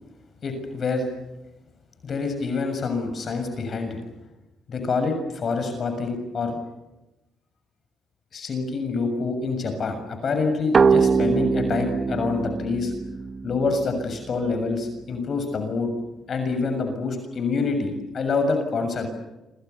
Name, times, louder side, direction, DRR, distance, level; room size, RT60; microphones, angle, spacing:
voice 1, 0.4-1.1 2.0-4.0 4.7-6.6 8.3-12.9 13.4-15.9 16.3-19.2, left 4 dB, 50° left, 7 dB, 6.8 m, -26 dB
sound 1, 10.7-14.2, right 5 dB, 40° right, 1.2 m, -22 dB
28.0 x 26.0 x 7.0 m, 1.0 s
cardioid pair, 90°, 0 cm